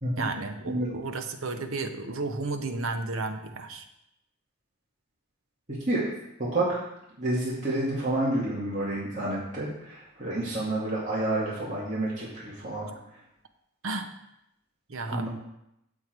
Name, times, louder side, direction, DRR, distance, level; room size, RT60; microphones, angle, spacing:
voice 1, 0.2-3.8 13.8-14.1 14.9-15.3, right 3 dB, 85° right, 6 dB, 1.0 m, -33 dB
voice 2, 6.4-6.8 7.2-12.9 15.1-15.3, right 1 dB, 40° right, -7 dB, 2.2 m, -29 dB
8.1 x 7.8 x 4.6 m, 0.83 s
head